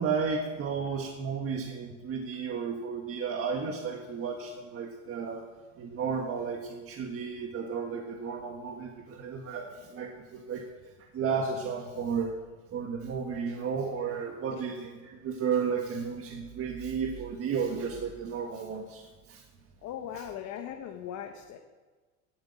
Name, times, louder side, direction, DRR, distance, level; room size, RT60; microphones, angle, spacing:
voice 1, 0.0-5.5 5.8-10.7 11.1-12.4 12.7-19.4 20.1-20.2, right 6 dB, 35° right, 3 dB, 1.6 m, -33 dB
voice 2, 19.8-21.6, left 9 dB, 50° left, 4 dB, 1.3 m, -39 dB
11.0 x 8.7 x 8.7 m, 1.3 s
supercardioid pair, 100°, 37 cm